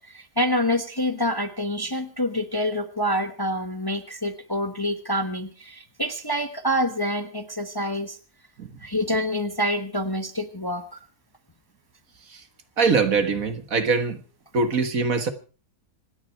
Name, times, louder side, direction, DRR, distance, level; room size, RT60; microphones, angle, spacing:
voice 1, 0.1-8.2 8.8-11.0, equal, 15° left, 8 dB, 1.1 m, -27 dB
voice 2, 12.8-14.2 14.5-15.3, right 4 dB, 60° right, 9 dB, 2.0 m, -22 dB
26.5 x 10.0 x 4.6 m, 0.35 s
omnidirectional pair, 1.7 m